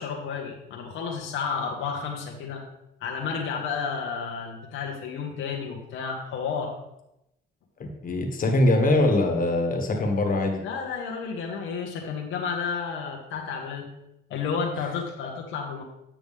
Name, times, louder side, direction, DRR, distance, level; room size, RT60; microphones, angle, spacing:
voice 1, 0.0-2.6 3.0-6.8 10.6-13.9 14.3-15.8, left 5 dB, 85° left, 0 dB, 1.3 m, -31 dB
voice 2, 7.8-10.6 15.2-15.3, left 2 dB, 45° left, 2 dB, 1.6 m, -23 dB
8.8 x 6.1 x 3.5 m, 0.85 s
cardioid pair, 90°, 20 cm